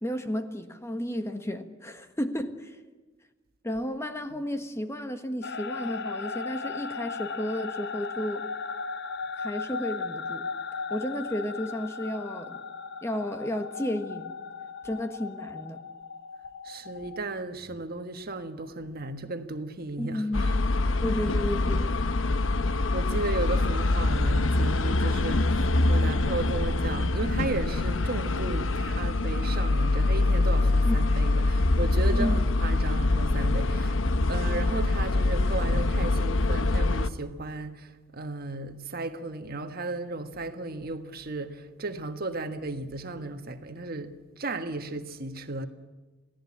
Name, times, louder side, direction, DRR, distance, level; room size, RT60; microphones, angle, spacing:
voice 1, 0.0-2.8 3.6-8.4 9.4-10.5 10.9-12.6 13.0-14.4 14.8-15.8 20.0-20.5 21.0-21.9 30.8-31.0 32.1-32.5, equal, 15° left, 1.4 m, -32 dB
sound 1, 5.4-17.2, left 4 dB, 60° left, 0.9 m, -37 dB
voice 2, 16.6-20.6 22.7-34.0 34.3-45.7, right 2 dB, 50° right, 1.5 m, -35 dB
sound 2, 20.3-37.1, left 2 dB, 85° left, 0.9 m, -24 dB
28.0 x 17.5 x 8.6 m
head